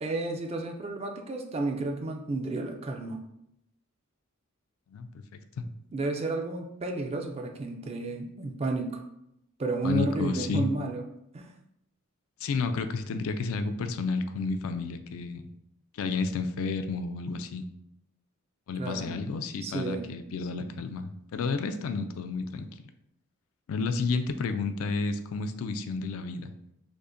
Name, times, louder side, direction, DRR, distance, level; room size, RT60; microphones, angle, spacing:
voice 1, 0.0-3.2 5.9-9.0 9.6-11.0 11.3-11.5 18.8-19.1 19.6-20.1, right 2 dB, 25° right, 3 dB, 0.3 m, -31 dB
voice 2, 9.8-10.7 12.4-15.4 15.9-17.7 18.7-22.7 23.7-26.5, left 4 dB, 70° left, 8 dB, 0.3 m, -31 dB
5.1 x 2.1 x 2.5 m, 0.80 s
head